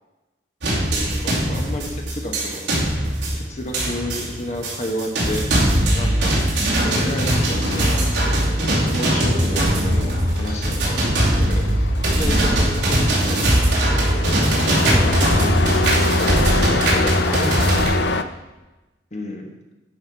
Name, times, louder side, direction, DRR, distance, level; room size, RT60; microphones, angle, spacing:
sound 1, 0.6-17.9, right 1 dB, 90° right, 2.7 m, -20 dB
voice 1, 0.8-2.7 3.3-5.4 5.9-6.4 6.8-8.0 8.6-14.4 16.9-17.0 19.1-19.5, left 1 dB, 40° left, 2 dB, 1.1 m, -31 dB
Truck, 7.1-18.2, left 3 dB, 65° left, 0.5 m, -27 dB
voice 2, 14.8-15.4 16.1-16.5 17.3-18.3, equal, 5° right, 0 dB, 1.2 m, -31 dB
10.5 x 5.7 x 4.6 m, 1.1 s
head